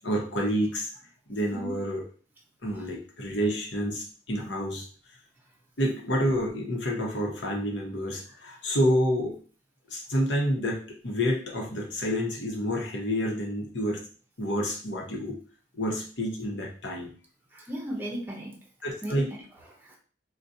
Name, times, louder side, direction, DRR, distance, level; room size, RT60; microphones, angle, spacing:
voice 1, 0.0-0.9 1.3-2.0 2.6-4.9 5.8-9.4 9.9-14.0 14.4-15.4 15.7-17.1 18.8-19.3, equal, 80° left, 0 dB, 0.9 m, -28 dB
voice 2, 17.5-18.6 19.0-19.4 19.7-20.0, equal, 10° right, 0 dB, 0.6 m, -36 dB
4.0 x 2.2 x 2.6 m, 0.40 s
head